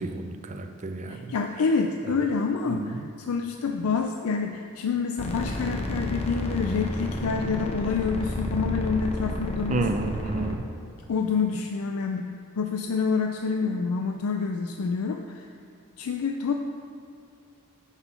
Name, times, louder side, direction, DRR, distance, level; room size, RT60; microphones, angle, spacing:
voice 1, 0.0-1.4 2.0-2.3 2.6-3.1 9.7-10.7, right 3 dB, 35° right, 6 dB, 0.5 m, -31 dB
voice 2, 1.1-3.0 3.3-9.8 11.1-12.3 12.6-15.5 16.0-16.5, left 5 dB, 80° left, 4 dB, 0.4 m, -27 dB
sound 1, 5.2-10.6, left 1 dB, 30° left, 0.6 m, -31 dB
5.9 x 5.6 x 5.8 m, 2.6 s
head